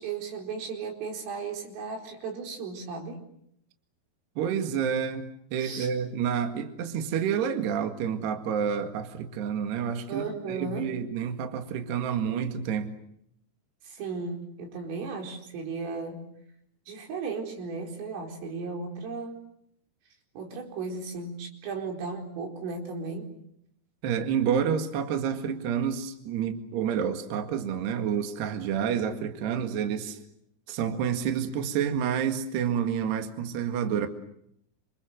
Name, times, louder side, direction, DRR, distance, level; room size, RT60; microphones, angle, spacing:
voice 1, 0.0-3.2 5.6-5.9 10.1-10.9 13.8-16.3 16.9-19.4 20.4-23.3, right 4 dB, 90° right, 3 dB, 7.1 m, -35 dB
voice 2, 4.4-12.9 24.0-30.2 30.7-34.1, right 8 dB, 65° right, 7 dB, 3.8 m, -29 dB
28.5 x 26.5 x 7.8 m, 0.73 s
omnidirectional pair, 5.7 m